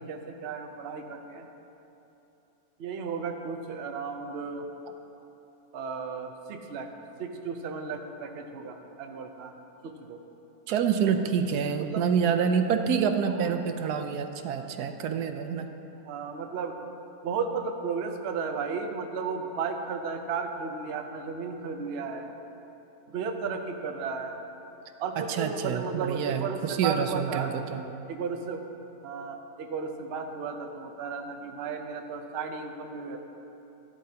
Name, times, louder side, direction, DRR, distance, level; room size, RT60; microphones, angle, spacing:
voice 1, 0.0-1.5 2.8-4.6 5.7-6.9 7.2-9.5 9.8-10.2 11.8-12.1 13.3-13.5 16.0-16.8 17.2-22.3 23.1-24.4 25.0-27.5 28.1-28.6 29.0-33.2, right 5 dB, 55° right, 5 dB, 0.8 m, -34 dB
voice 2, 10.7-15.7 25.2-27.8, right 7 dB, 85° right, 7 dB, 1.2 m, -27 dB
13.5 x 11.5 x 2.8 m, 3.0 s
omnidirectional pair, 1.7 m